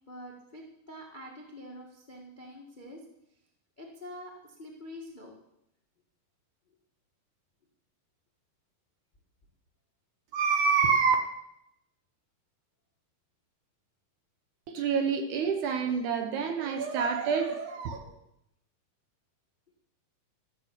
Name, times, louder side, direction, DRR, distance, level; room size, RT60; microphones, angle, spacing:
voice 1, 0.1-3.0 3.8-5.3, equal, 45° left, -1 dB, 0.5 m, -46 dB
voice 2, 10.3-11.2 14.7-18.1, right 6 dB, 65° right, 5 dB, 2.1 m, -27 dB
14.0 x 6.7 x 8.2 m, 0.83 s
omnidirectional pair, 4.3 m